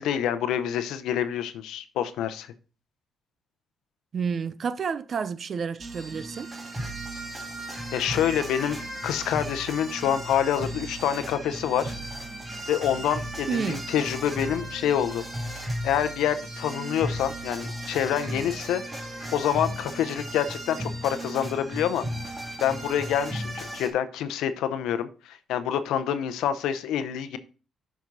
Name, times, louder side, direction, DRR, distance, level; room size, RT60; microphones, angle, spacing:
voice 1, 0.0-2.5 7.9-8.8 9.0-11.9 12.7-15.2 15.8-18.8 19.3-22.0 22.6-27.4, left 9 dB, 85° left, 0.7 m, -27 dB
voice 2, 4.1-6.5 13.5-13.8, right 6 dB, 50° right, 0.5 m, -30 dB
sound 1, 5.8-23.9, right 1 dB, 20° right, 2.0 m, -35 dB
7.2 x 6.0 x 3.9 m
cardioid pair, 90°, 0 cm